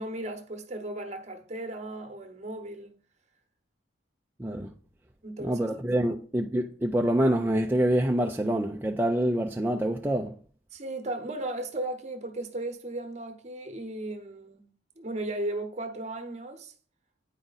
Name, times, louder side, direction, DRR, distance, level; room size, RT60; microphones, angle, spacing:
voice 1, 0.0-3.0 5.2-5.6 6.0-6.1 10.7-14.7 15.0-16.7, right 1 dB, 35° right, 1.0 m, -36 dB
voice 2, 5.4-10.3, right 1 dB, 10° right, 0.4 m, -26 dB
9.0 x 5.0 x 4.0 m
head